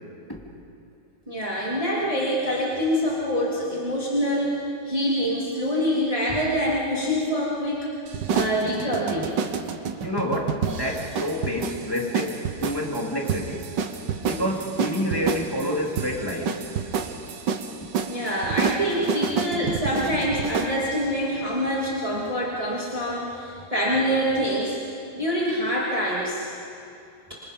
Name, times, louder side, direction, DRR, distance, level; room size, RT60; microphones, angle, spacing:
voice 1, 1.3-7.9 8.3-9.3 18.1-24.8 25.1-26.5, equal, 20° right, -6 dB, 2.8 m, -25 dB
sound 1, 8.1-20.8, right 6 dB, 70° right, 1.8 m, -29 dB
voice 2, 10.0-13.7 14.2-16.5, equal, 10° left, -2 dB, 3.1 m, -28 dB
27.0 x 25.5 x 5.4 m, 2.6 s
omnidirectional pair, 2.0 m